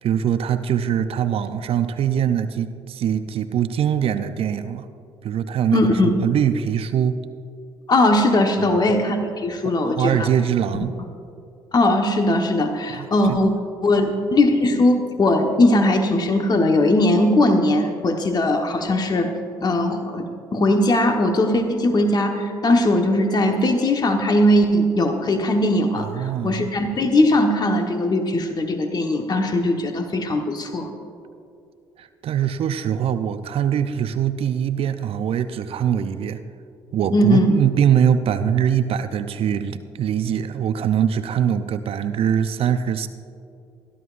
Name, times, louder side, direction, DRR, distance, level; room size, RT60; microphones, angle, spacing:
voice 1, 0.0-4.9 5.2-7.2 8.6-8.8 9.6-10.9 12.9-13.4 26.0-26.7 32.0-36.4 36.9-43.1, right 9 dB, 55° right, 10 dB, 0.6 m, -22 dB
voice 2, 5.7-6.1 7.9-10.3 11.7-13.5 13.8-19.3 19.6-30.9 37.1-37.5, left 1 dB, 35° left, 4 dB, 1.3 m, -19 dB
21.5 x 12.5 x 2.6 m, 2.5 s
hypercardioid pair, 55°, 12 cm